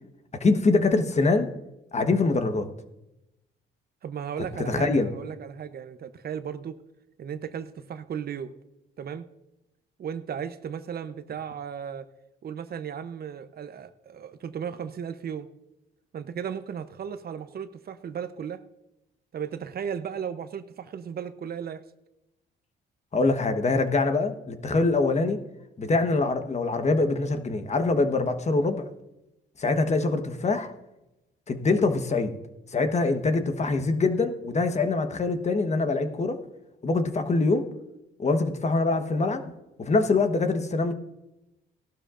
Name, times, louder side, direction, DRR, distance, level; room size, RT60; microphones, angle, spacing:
voice 1, 0.4-1.5 1.9-2.7 4.7-5.1 23.1-25.4 25.8-28.9 29.6-30.7 31.5-32.3 32.7-36.4 36.8-37.6 38.2-39.4 39.8-40.9, left 3 dB, 35° left, 7 dB, 1.2 m, -24 dB
voice 2, 4.0-6.8 7.2-8.5 9.0-9.2 10.0-12.1 12.4-15.5 16.1-18.6 19.3-21.8, right 8 dB, 50° right, 11 dB, 0.8 m, -35 dB
16.5 x 12.0 x 2.5 m, 0.92 s
cardioid pair, 90°, 20 cm